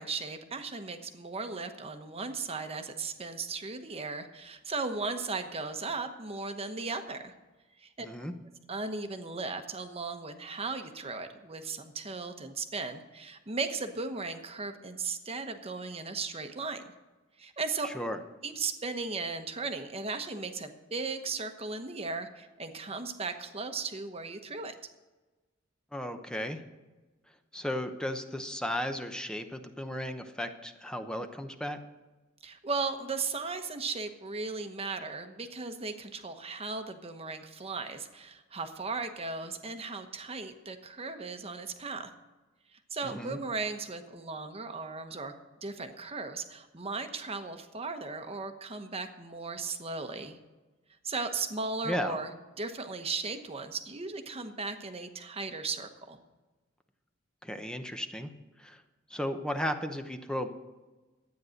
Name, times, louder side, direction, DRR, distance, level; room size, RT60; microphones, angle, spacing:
voice 1, 0.0-7.3 7.8-8.1 8.7-16.8 17.4-17.9 18.4-24.7 32.4-42.1 42.9-45.3 45.6-50.4 51.0-56.2, right 4 dB, 30° right, 7 dB, 1.1 m, -36 dB
voice 2, 8.0-8.3 17.8-18.2 25.9-26.6 27.5-31.8 43.0-43.4 51.8-52.2 57.4-58.3 58.6-58.8 59.1-60.5, equal, 5° left, 6 dB, 0.8 m, -35 dB
12.5 x 9.4 x 6.5 m, 1.2 s
head